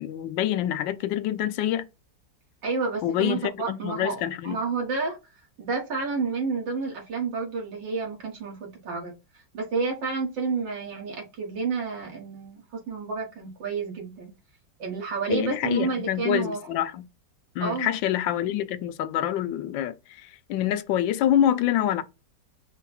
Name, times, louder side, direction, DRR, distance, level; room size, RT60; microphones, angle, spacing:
voice 1, 0.0-1.9 3.0-4.6 15.3-17.1 17.5-22.0, left 11 dB, 85° left, 1.3 m, -26 dB
voice 2, 2.6-5.2 5.6-9.1 9.5-14.3 14.8-16.6 17.6-17.9, right 4 dB, 75° right, 2.3 m, -30 dB
5.3 x 2.3 x 4.2 m
omnidirectional pair, 2.0 m